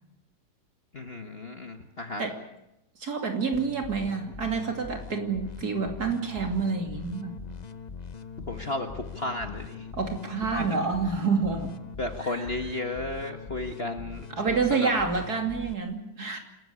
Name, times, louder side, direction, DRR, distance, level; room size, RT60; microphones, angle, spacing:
voice 1, 0.9-2.3 8.4-9.9 10.6-10.9 12.0-14.9, left 2 dB, 35° left, 6 dB, 1.5 m, -34 dB
voice 2, 3.0-7.4 9.9-11.7 12.2-12.3 14.4-16.4, right 4 dB, 50° right, 4 dB, 3.1 m, -28 dB
sound 1, 3.5-15.7, left 5 dB, 55° left, 0.4 m, -42 dB
27.0 x 13.5 x 9.9 m, 0.85 s
omnidirectional pair, 2.2 m